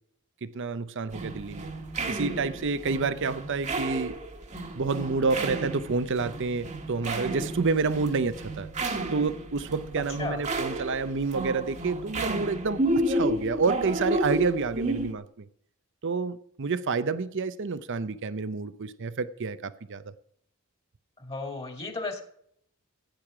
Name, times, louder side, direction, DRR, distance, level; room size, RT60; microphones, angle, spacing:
voice 1, 0.4-1.7 2.1-4.2 4.7-8.7 9.1-15.5 16.0-20.0, right 4 dB, 60° right, 0.6 m, -29 dB
sound 1, 1.1-15.1, right 1 dB, 35° right, 1.5 m, -32 dB
voice 2, 21.2-22.2, left 3 dB, 25° left, 2.1 m, -34 dB
15.5 x 9.1 x 4.9 m
head